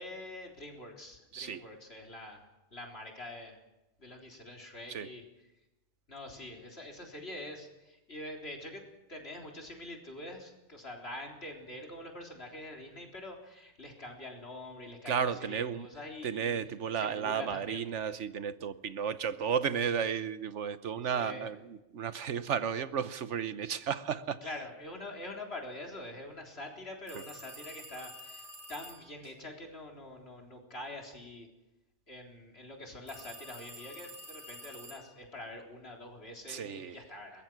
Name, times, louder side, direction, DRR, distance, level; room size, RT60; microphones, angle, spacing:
voice 1, 0.0-3.6 4.0-5.2 6.1-16.6 16.9-17.9 21.1-21.5 24.4-31.5 32.1-37.4, left 1 dB, 60° left, 4.0 m, -45 dB
voice 2, 15.1-15.9 16.2-24.5 27.1-27.2 36.5-37.0, right 7 dB, 80° right, 1.2 m, -33 dB
sound 1, 27.1-29.2 33.1-35.3, right 1 dB, 30° right, 2.7 m, -49 dB
22.5 x 21.0 x 6.2 m
omnidirectional pair, 1.2 m